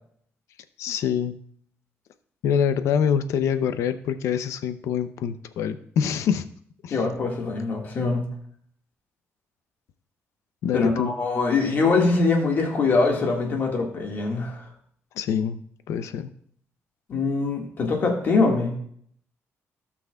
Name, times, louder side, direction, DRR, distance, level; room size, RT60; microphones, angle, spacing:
voice 1, 0.8-1.4 2.4-6.4 6.8-7.0 10.6-11.1 15.2-15.6 15.9-16.3, left 8 dB, 85° left, 11 dB, 0.6 m, -25 dB
voice 2, 6.9-8.3 10.7-14.6 17.1-18.8, left 3 dB, 40° left, 0 dB, 1.8 m, -23 dB
16.5 x 6.0 x 2.3 m, 0.63 s
cardioid pair, 170°, 5 cm